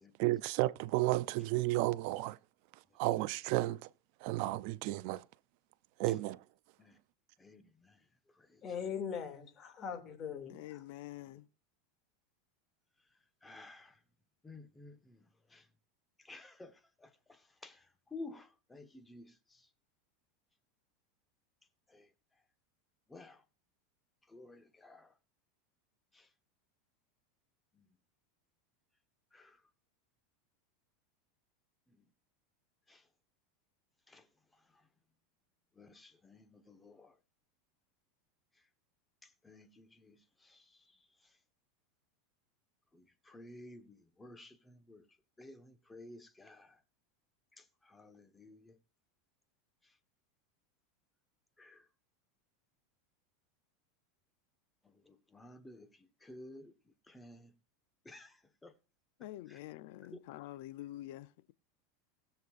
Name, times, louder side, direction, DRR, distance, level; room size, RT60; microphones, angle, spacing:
voice 1, 0.2-2.4 3.0-3.9 4.2-5.2 6.0-6.4, right 18 dB, 60° right, 0.5 m, -32 dB
voice 2, 7.4-8.0 8.4-8.6 13.4-14.0 14.4-15.2 15.5-15.6 16.2-17.8 18.1-19.7 21.9-22.1 23.1-23.4 24.3-25.1 26.1-26.3 27.7-27.8 29.3-29.6 32.9-33.0 34.1-34.2 35.8-37.1 39.2-40.8 42.9-45.0 45.4-46.8 47.6-48.8 51.6-51.8 55.1-55.9 56.2-56.7 57.1-57.5 58.0-58.7, left 2 dB, 10° left, 1.3 m, -53 dB
voice 3, 8.6-10.6, left 7 dB, 35° left, 2.6 m, -40 dB
voice 4, 10.5-11.5 59.2-61.5, left 15 dB, 65° left, 0.6 m, -47 dB
20.0 x 6.9 x 2.6 m
supercardioid pair, 120°, 0 cm